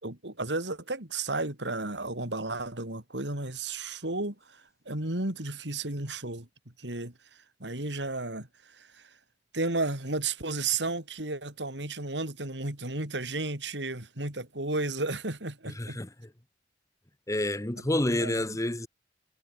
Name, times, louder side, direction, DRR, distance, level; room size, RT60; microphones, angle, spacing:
voice 1, 0.0-6.5 6.8-7.1 7.6-9.1 9.5-16.0 17.9-18.4, right 2 dB, 85° right, 4.4 m, -33 dB
voice 2, 15.7-16.1 17.3-18.9, left 1 dB, 20° left, 1.4 m, -29 dB
head